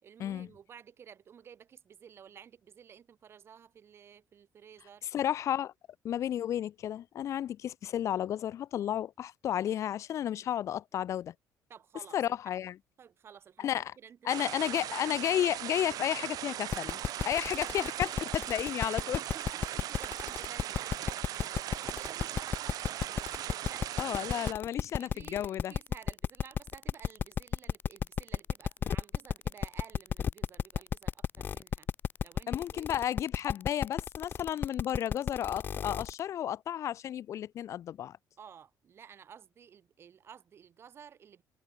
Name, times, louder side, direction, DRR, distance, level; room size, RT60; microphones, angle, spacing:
voice 1, 0.0-5.1 11.7-12.4 13.0-14.8 17.2-18.0 19.1-24.2 24.7-31.9 32.2-32.9 38.4-41.4, right 8 dB, 35° right, 4.9 m, -53 dB
voice 2, 5.1-5.7 6.0-11.3 12.1-12.7 13.6-13.9 14.3-17.0 17.2-19.2 24.0-25.7 32.5-38.2, left 11 dB, 45° left, 0.8 m, -32 dB
sound 1, 14.3-24.5, right 13 dB, 65° right, 2.1 m, -39 dB
sound 2, 16.7-36.2, left 7 dB, 30° left, 0.3 m, -33 dB
cardioid pair, 175°, 7 cm